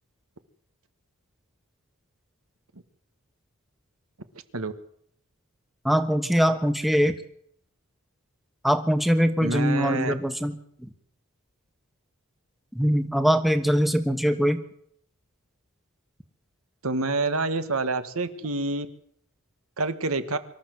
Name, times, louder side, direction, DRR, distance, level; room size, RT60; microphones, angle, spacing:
voice 1, 5.8-7.2 8.6-10.9 12.7-14.6, equal, ahead, 8 dB, 1.4 m, -22 dB
voice 2, 9.4-10.1 16.8-18.9 19.8-20.4, right 3 dB, 75° right, 11 dB, 1.7 m, -27 dB
24.5 x 13.5 x 7.8 m, 0.67 s
head